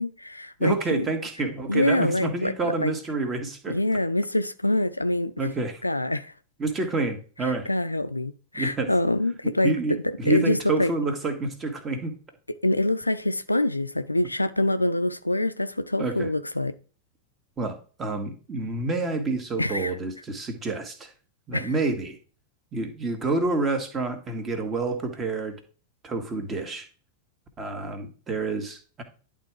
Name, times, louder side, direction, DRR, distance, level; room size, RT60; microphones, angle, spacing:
voice 1, 0.0-1.1 1.7-2.9 3.7-5.3 5.8-6.3 7.7-10.9 12.6-16.7 19.6-19.9 21.5-21.7, left 1 dB, 85° left, 0.4 m, -25 dB
voice 2, 0.6-3.8 5.4-5.8 6.6-7.7 8.5-8.9 9.6-12.1 16.0-16.3 17.6-21.1 21.5-22.2 22.7-25.6 26.0-26.8 27.6-29.0, right 3 dB, 20° right, 1.7 m, -28 dB
10.5 x 3.7 x 4.6 m
figure-of-eight pair, 90°, 0 cm